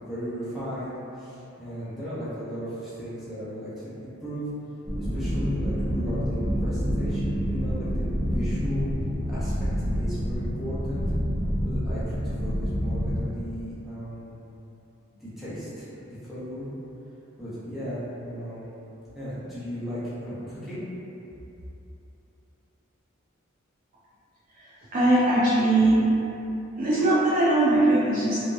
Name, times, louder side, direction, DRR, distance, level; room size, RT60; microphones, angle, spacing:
voice 1, 0.1-4.4 5.1-8.9 9.3-9.5 9.9-11.0 11.6-14.4 15.2-16.7 17.4-18.6 19.1-20.9, equal, ahead, -13 dB, 0.7 m, -36 dB
sound 1, 4.8-13.2, equal, 60° right, 0.9 m, -27 dB
voice 2, 24.9-26.0 26.8-28.4, right 2 dB, 40° right, -8 dB, 0.3 m, -20 dB
2.7 x 2.1 x 2.3 m, 2.9 s
head